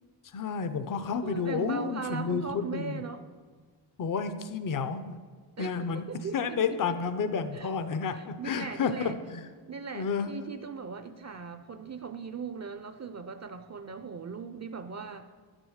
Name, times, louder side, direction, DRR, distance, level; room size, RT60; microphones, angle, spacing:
voice 1, 0.3-3.0 4.0-5.2 5.6-6.1 6.3-9.4 9.9-10.3, left 5 dB, 50° left, 10 dB, 0.7 m, -31 dB
voice 2, 1.2-3.2 5.6-6.6 7.5-7.7 8.1-9.2 9.7-15.3, right 5 dB, 40° right, 9 dB, 0.5 m, -39 dB
10.0 x 6.3 x 6.4 m, 1.5 s
wide cardioid pair, 110°, 43 cm